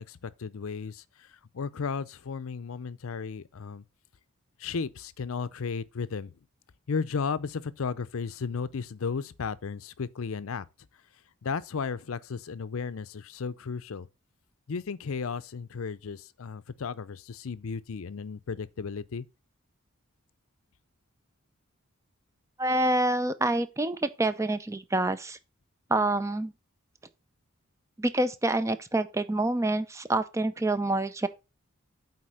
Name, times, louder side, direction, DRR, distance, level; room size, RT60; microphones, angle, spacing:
voice 1, 0.0-3.8 4.6-6.3 6.9-10.7 11.4-14.1 14.7-19.3, left 5 dB, 70° left, 0.5 m, -34 dB
voice 2, 22.6-25.4 25.9-26.5 28.0-31.3, right 2 dB, 15° right, 0.5 m, -27 dB
8.6 x 4.1 x 4.9 m
head